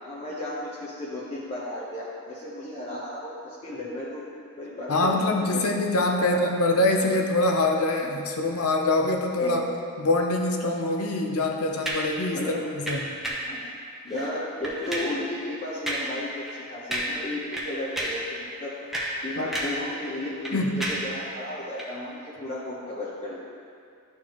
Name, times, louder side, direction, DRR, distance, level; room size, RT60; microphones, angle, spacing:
voice 1, 0.0-4.3 4.6-5.8 6.2-6.4 9.4-9.6 12.3-12.5 13.4-13.7 14.0-18.7 19.2-23.4, left 1 dB, 30° left, -8 dB, 0.9 m, -34 dB
voice 2, 4.9-9.6 10.0-12.4 12.7-13.2 19.4-19.5 20.5-21.0, left 2 dB, 75° left, 2 dB, 0.7 m, -24 dB
sound 1, 11.8-12.1 12.9-13.5 14.1-14.3 14.6-15.2 15.9-16.2 16.5-16.6 16.9-17.3 17.5-18.3 18.7-19.9 20.1-21.1 21.7-21.9, right 1 dB, ahead, 0.8 m, -31 dB
11.5 x 4.5 x 3.0 m, 2.4 s
head